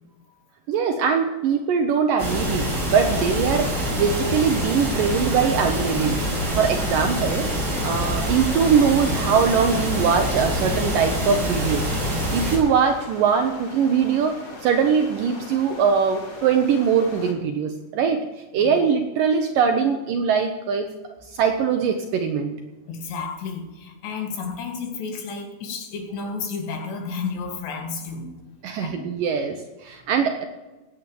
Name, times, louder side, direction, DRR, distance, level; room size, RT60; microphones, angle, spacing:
voice 1, 0.7-6.3 6.6-7.5 7.8-11.9 12.3-14.3 14.6-18.2 18.5-20.9 21.3-22.6 28.6-30.5, right 6 dB, 75° right, 5 dB, 2.1 m, -22 dB
sound 1, 2.2-12.6, equal, 25° right, 5.7 m, -25 dB
sound 2, 7.8-17.3, left 2 dB, 35° left, 1.3 m, -41 dB
voice 2, 22.9-28.3 28.8-29.0, left 5 dB, 80° left, 3 dB, 4.2 m, -32 dB
16.5 x 9.5 x 7.0 m, 1.1 s
omnidirectional pair, 4.9 m